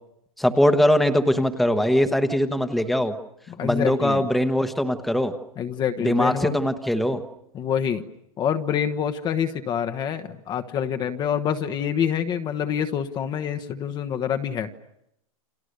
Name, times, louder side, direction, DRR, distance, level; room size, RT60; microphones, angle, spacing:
voice 1, 0.4-3.1 3.6-5.3 6.0-7.2, equal, ahead, 7 dB, 1.2 m, -21 dB
voice 2, 3.5-4.3 5.6-6.6 7.5-8.0 8.4-14.7, left 8 dB, 25° left, 8 dB, 1.1 m, -26 dB
29.5 x 26.0 x 6.7 m, 0.81 s
hypercardioid pair, 140°, 18 cm